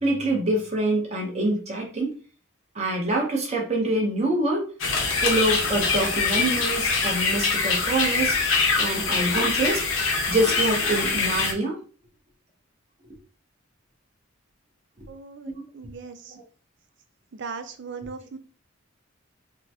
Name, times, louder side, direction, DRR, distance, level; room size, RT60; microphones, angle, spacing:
voice 1, 0.0-2.1 2.7-4.6 5.2-8.4 8.8-9.8 10.3-11.8 16.3-16.4, right 2 dB, 35° right, -1 dB, 1.0 m, -25 dB
sound 1, 4.8-11.5, left 4 dB, 70° left, 0.9 m, -24 dB
voice 2, 15.1-16.4 17.3-18.4, right 5 dB, 60° right, 9 dB, 0.4 m, -38 dB
3.7 x 2.2 x 2.8 m, 0.38 s
head